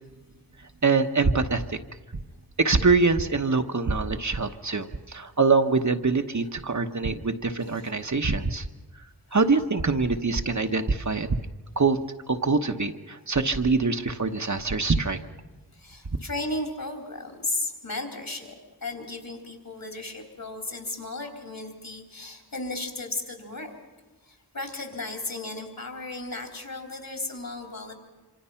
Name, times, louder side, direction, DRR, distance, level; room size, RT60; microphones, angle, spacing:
voice 1, 0.8-1.8 2.6-8.6 9.3-11.4 11.8-12.0 12.3-15.2, right 4 dB, 45° right, 6 dB, 1.1 m, -24 dB
voice 2, 15.7-23.7 24.2-27.9, left 2 dB, 55° left, 3 dB, 3.9 m, -35 dB
26.5 x 25.5 x 5.8 m, 1.2 s
wide cardioid pair, 55°, 40 cm